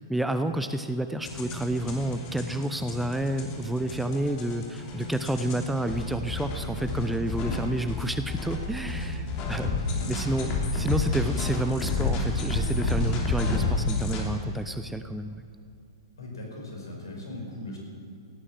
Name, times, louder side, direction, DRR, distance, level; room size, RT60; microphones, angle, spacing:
voice 1, 0.1-9.7 10.1-15.4, right 1 dB, 5° right, 9 dB, 0.6 m, -30 dB
sound 1, 1.2-14.2, left 3 dB, 35° left, 3.1 m, -30 dB
voice 2, 7.4-7.8 10.0-10.1 16.2-17.8, left 2 dB, 75° left, 0 dB, 5.1 m, -39 dB
17.0 x 9.9 x 7.6 m, 2.5 s
figure-of-eight pair, 110°, 2 cm